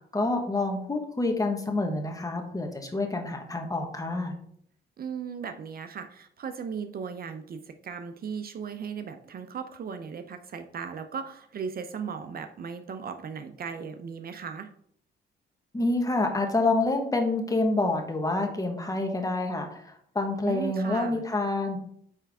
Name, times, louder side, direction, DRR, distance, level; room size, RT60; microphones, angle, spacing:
voice 1, 0.0-4.3 15.7-21.8, left 2 dB, 15° left, 4 dB, 1.3 m, -27 dB
voice 2, 5.0-14.7 20.4-21.2, right 6 dB, 50° right, 8 dB, 0.6 m, -37 dB
9.0 x 3.5 x 3.5 m, 0.65 s
cardioid pair, 90°, 20 cm